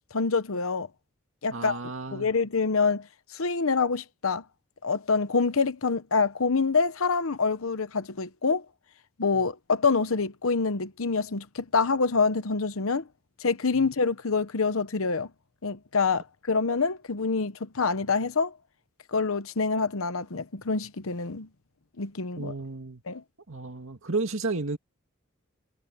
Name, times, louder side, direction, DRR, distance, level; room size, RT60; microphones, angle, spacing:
voice 1, 0.1-0.9 1.4-1.8 2.1-3.1 3.3-4.4 4.8-8.6 9.2-13.0 13.4-15.3 15.6-18.5 19.1-21.5 22.0-22.5 23.1-23.2, left 4 dB, 75° left, 0.9 m, -26 dB
voice 2, 1.5-2.3 9.3-9.5 13.7-13.9 22.4-23.0 23.5-24.8, right 3 dB, 65° right, 2.2 m, -32 dB
head